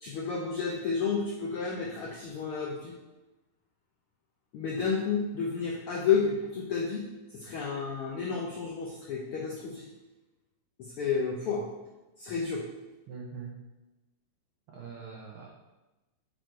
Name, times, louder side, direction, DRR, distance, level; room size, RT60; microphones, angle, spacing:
voice 1, 0.0-2.9 4.5-7.0 7.4-9.8 10.8-11.6 12.2-12.6, left 5 dB, 85° left, -2 dB, 1.2 m, -31 dB
voice 2, 13.1-13.5 14.7-15.5, right 5 dB, 85° right, -2 dB, 1.2 m, -42 dB
6.3 x 4.2 x 4.5 m, 1.1 s
omnidirectional pair, 3.4 m